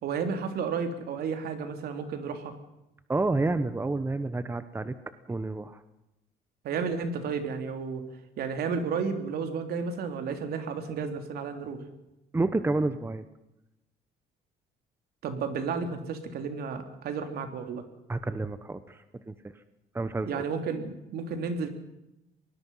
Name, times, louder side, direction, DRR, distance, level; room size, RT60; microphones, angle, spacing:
voice 1, 0.0-2.5 6.6-8.0 8.4-11.8 15.2-17.8 20.2-21.7, right 5 dB, 65° right, 7 dB, 3.4 m, -32 dB
voice 2, 3.1-4.9 5.3-5.8 12.3-13.3 18.1-19.5 19.9-20.4, right 2 dB, 15° right, 12 dB, 1.1 m, -29 dB
25.0 x 20.0 x 5.7 m, 0.92 s
cardioid pair, 110°, 17 cm